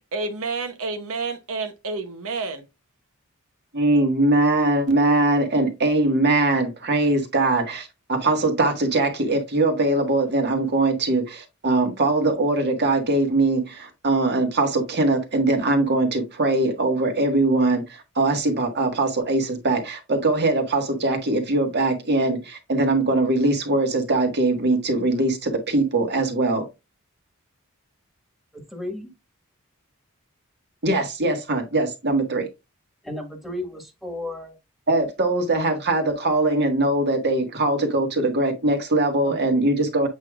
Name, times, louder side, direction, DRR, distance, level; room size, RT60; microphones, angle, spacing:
voice 1, 0.1-2.6, right 3 dB, 70° right, 0.9 m, -29 dB
voice 2, 3.7-26.7 30.8-32.5 34.9-40.1, right 2 dB, 50° right, 1.7 m, -21 dB
voice 3, 28.7-29.1 33.0-34.6 39.2-39.3, left 1 dB, ahead, 1.6 m, -33 dB
8.1 x 4.8 x 2.5 m
head